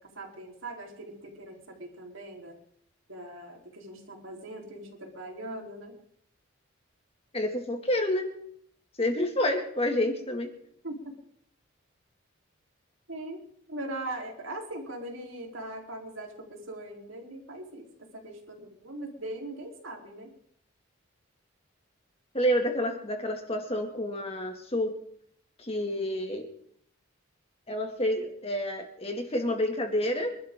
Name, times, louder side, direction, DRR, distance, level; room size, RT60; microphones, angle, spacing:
voice 1, 0.0-2.6 3.1-6.0 10.8-11.2 13.1-13.4 13.7-20.3, right 1 dB, 75° right, 1 dB, 4.1 m, -40 dB
voice 2, 7.3-8.3 9.0-10.5 22.3-25.0 25.6-26.5 27.7-30.3, left 1 dB, 30° left, 3 dB, 2.3 m, -29 dB
25.0 x 12.5 x 3.8 m, 0.66 s
head